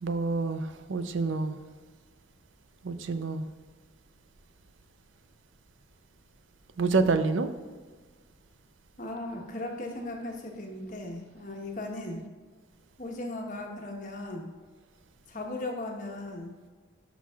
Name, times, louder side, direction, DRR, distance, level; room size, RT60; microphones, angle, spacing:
voice 1, 0.0-1.6 2.8-3.4 6.8-7.5, right 3 dB, 75° right, 9 dB, 0.5 m, -27 dB
voice 2, 9.0-12.2 13.0-14.5 15.3-16.6, left 2 dB, 40° left, 1 dB, 1.1 m, -37 dB
10.5 x 6.1 x 2.4 m, 1.5 s
head